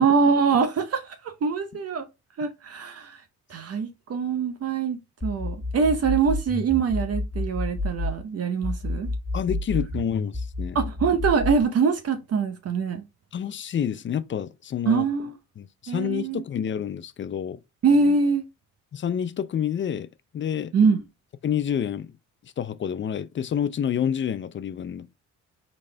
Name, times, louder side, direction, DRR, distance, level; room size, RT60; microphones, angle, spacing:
voice 1, 0.0-2.1 2.4-3.2 3.5-9.1 10.7-13.0 14.9-15.3 15.9-16.4 17.8-18.4 20.7-21.0, right 5 dB, 55° right, 0.8 m, -23 dB
sound 1, 5.2-8.2 8.6-11.6, left 2 dB, 15° left, 2.1 m, -29 dB
voice 2, 9.3-10.8 13.3-15.0 15.6-17.6 18.9-20.1 20.3-20.7 21.4-22.1 22.6-25.3, left 9 dB, 40° left, 0.5 m, -28 dB
4.1 x 3.1 x 3.3 m
cardioid pair, 90°, 30 cm